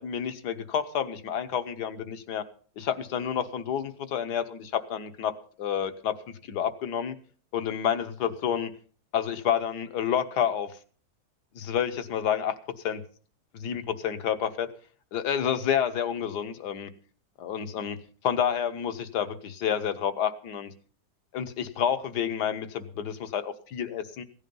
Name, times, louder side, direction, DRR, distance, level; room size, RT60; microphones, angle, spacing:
voice 1, 0.0-2.4 2.8-5.3 5.6-7.2 7.5-8.7 9.1-10.7 11.5-12.6 12.8-13.0 13.5-14.7 15.1-16.9 17.4-18.0 18.2-20.7 21.3-24.2, left 8 dB, 65° left, 10 dB, 1.5 m, -29 dB
16.5 x 10.5 x 5.4 m, 0.42 s
omnidirectional pair, 1.9 m